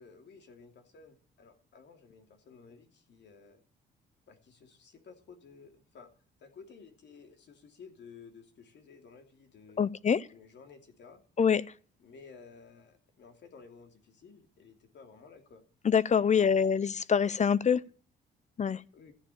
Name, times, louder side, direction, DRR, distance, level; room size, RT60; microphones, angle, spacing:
voice 1, 0.0-3.6 4.3-6.1 6.4-9.9 10.3-11.2 12.0-15.6 16.3-16.6 18.9-19.1, left 5 dB, 65° left, 2.8 m, -54 dB
voice 2, 9.8-10.2 11.4-11.6 15.8-17.8 18.6-18.8, left 7 dB, 35° left, 0.6 m, -25 dB
14.5 x 7.4 x 8.6 m
cardioid pair, 90°, 20 cm